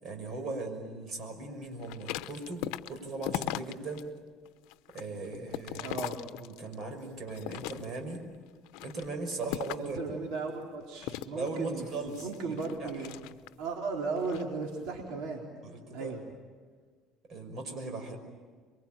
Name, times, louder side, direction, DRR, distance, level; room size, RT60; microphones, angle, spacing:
voice 1, 0.0-4.1 4.9-8.2 8.8-10.0 11.3-13.0 15.6-16.2 17.3-18.2, right 3 dB, 45° right, 5 dB, 5.9 m, -39 dB
sound 1, 1.8-4.0 4.5-6.8 7.3-8.2 8.7-10.0 11.0-13.7 14.2-14.5, left 14 dB, 85° left, 0.8 m, -39 dB
voice 2, 5.8-6.2 9.8-11.9 12.2-13.1 13.6-15.4 15.9-16.2, right 4 dB, 75° right, 0 dB, 4.1 m, -36 dB
28.0 x 23.5 x 9.0 m, 1.5 s
cardioid pair, 135°, 0 cm